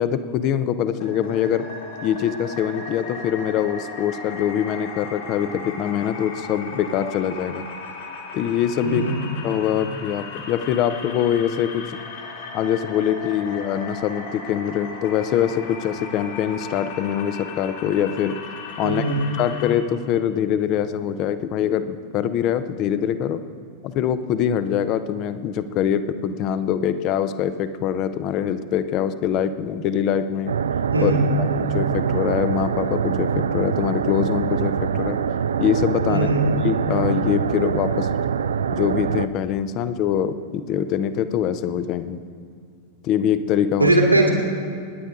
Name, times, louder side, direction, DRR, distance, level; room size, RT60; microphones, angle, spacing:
voice 1, 0.0-1.7 2.0-7.6 8.3-9.0 9.4-12.0 12.5-18.4 18.8-19.0 19.4-23.4 23.8-30.5 31.0-31.1 31.4-35.2 35.6-36.3 36.6-38.1 38.7-42.2 43.0-43.9, left 9 dB, 40° left, 12 dB, 0.7 m, -23 dB
sound 1, 1.0-19.7, left 4 dB, 55° left, 2.5 m, -36 dB
voice 2, 8.8-9.3 18.8-19.4 30.9-31.4 36.1-36.6 43.8-44.3, right 2 dB, 85° right, 0 dB, 2.5 m, -20 dB
sound 2, 30.5-39.3, right 7 dB, 65° right, 0.4 m, -24 dB
25.5 x 10.5 x 3.7 m, 2.3 s
figure-of-eight pair, 90°, 0 cm